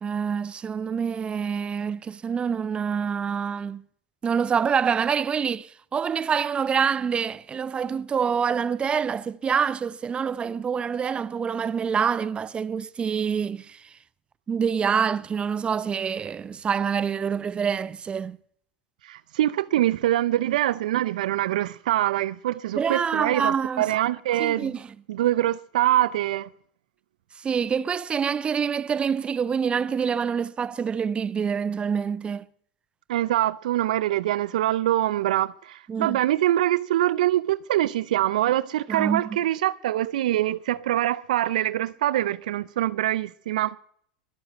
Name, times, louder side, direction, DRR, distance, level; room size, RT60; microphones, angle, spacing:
voice 1, 0.0-3.8 4.2-13.9 14.5-18.4 22.7-23.9 24.4-24.9 27.4-32.4 35.9-36.2 38.9-39.4, right 6 dB, 25° right, 0.8 m, -26 dB
voice 2, 19.0-24.8 25.1-26.5 33.1-43.8, right 13 dB, 75° right, 0.6 m, -24 dB
22.5 x 7.9 x 8.1 m
hypercardioid pair, 90°, 4 cm